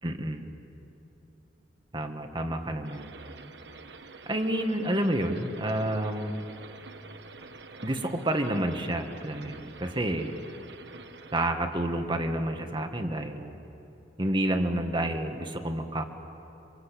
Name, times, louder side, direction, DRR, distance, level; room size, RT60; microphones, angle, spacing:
voice 1, 0.0-0.4 1.9-3.1 4.2-6.4 7.8-10.4 11.3-13.5 14.2-16.0, right 1 dB, 25° right, 5 dB, 1.7 m, -29 dB
sound 1, 2.8-11.5, right 4 dB, 70° right, 1.3 m, -47 dB
27.5 x 25.5 x 8.5 m, 3.0 s
head